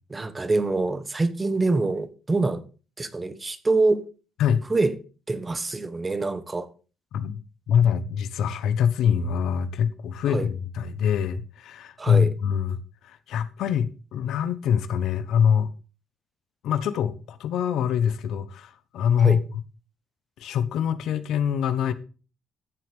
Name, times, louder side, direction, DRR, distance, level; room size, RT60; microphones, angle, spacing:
voice 1, 0.1-2.6 3.0-4.1 4.7-4.9 5.3-6.7 10.3-10.5 12.0-12.3 19.2-19.4, right 3 dB, 25° right, 1.4 m, -25 dB
voice 2, 7.7-12.8 13.0-15.7 16.6-19.4 20.4-21.9, left 8 dB, 80° left, 1.1 m, -24 dB
14.0 x 7.8 x 3.6 m
cardioid pair, 95°, 0 cm